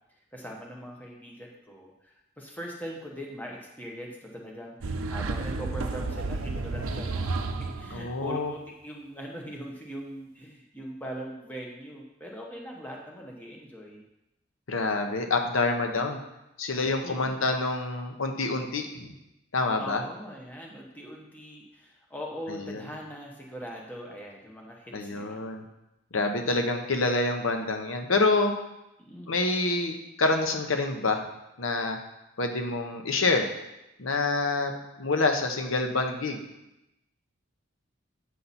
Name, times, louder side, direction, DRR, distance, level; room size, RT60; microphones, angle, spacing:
voice 1, 0.3-7.3 7.8-14.0 17.0-17.5 19.8-25.5 29.0-29.3, equal, 10° left, -1 dB, 0.9 m, -41 dB
sound 1, 4.8-8.3, right 3 dB, 85° right, 0.6 m, -32 dB
voice 2, 7.9-8.5 14.7-16.2 16.6-19.1 19.5-20.0 22.5-22.8 24.9-25.6 26.1-28.5 29.3-31.3 31.6-32.0 32.4-33.5 34.0-34.7 35.0-36.4, left 3 dB, 75° left, 4 dB, 0.8 m, -27 dB
8.3 x 5.7 x 4.1 m, 0.90 s
head